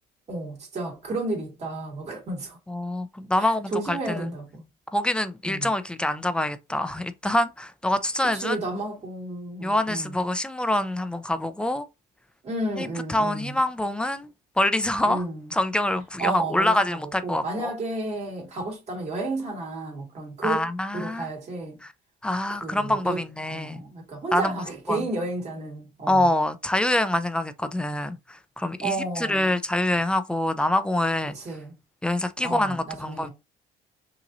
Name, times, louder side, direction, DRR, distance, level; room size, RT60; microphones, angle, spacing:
voice 1, 0.3-2.6 3.4-4.7 5.4-5.7 8.3-10.2 12.4-13.6 15.1-15.4 16.2-20.7 20.9-21.8 22.5-23.2 23.5-26.3 28.8-29.6 31.3-31.8 32.4-33.3, right 2 dB, 40° right, 2.5 m, -32 dB
voice 2, 2.7-4.3 4.9-8.6 9.6-11.9 12.8-15.3 15.5-17.7 20.4-21.3 21.8-21.9 22.2-23.8 24.3-24.6 24.9-25.1 26.1-31.4 32.0-33.3, left 1 dB, 5° left, 0.5 m, -25 dB
5.6 x 2.9 x 2.6 m
cardioid pair, 110°, 17 cm